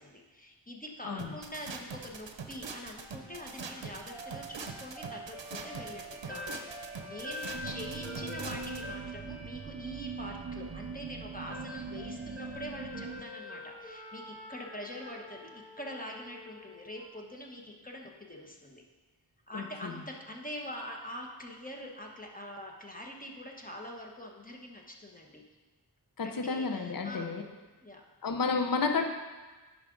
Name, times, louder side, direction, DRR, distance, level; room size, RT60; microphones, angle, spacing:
voice 1, 0.0-18.8 19.5-25.4 26.2-27.3 27.8-28.0, left 1 dB, 20° left, 0 dB, 1.1 m, -44 dB
sound 1, 1.2-8.8, right 5 dB, 85° right, 0.7 m, -42 dB
Chinese flute Hulusi, 3.0-17.1, left 1 dB, ahead, 2.3 m, -46 dB
sound 2, 7.5-13.2, right 6 dB, 40° right, 0.5 m, -41 dB
voice 2, 19.5-20.0 26.2-27.4 28.2-29.0, left 4 dB, 50° left, 5 dB, 0.7 m, -31 dB
10.5 x 5.0 x 3.8 m, 1.3 s
wide cardioid pair, 45°, 43 cm